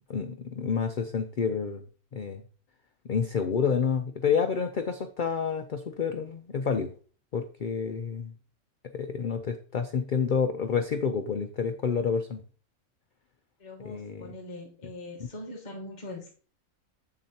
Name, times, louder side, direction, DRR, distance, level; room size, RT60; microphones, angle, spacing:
voice 1, 0.1-1.8 2.1-2.4 3.1-6.9 7.3-8.3 8.9-12.4 13.8-14.3, left 6 dB, 65° left, 8 dB, 0.5 m, -29 dB
voice 2, 13.6-16.3, left 2 dB, 30° left, -3 dB, 1.4 m, -42 dB
7.8 x 7.3 x 2.8 m, 0.41 s
omnidirectional pair, 1.5 m